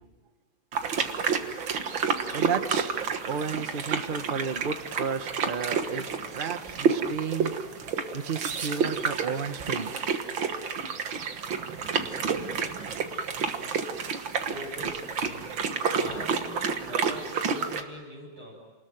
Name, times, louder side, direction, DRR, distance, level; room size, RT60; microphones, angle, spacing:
sound 1, 0.7-17.8, right 6 dB, 80° right, 2.3 m, -30 dB
voice 1, 2.3-7.5 8.1-9.9, right 6 dB, 30° right, 9 dB, 1.1 m, -33 dB
voice 2, 14.5-15.5 15.9-18.5, equal, 50° right, -2 dB, 7.7 m, -42 dB
29.0 x 20.5 x 9.2 m, 1.2 s
omnidirectional pair, 2.1 m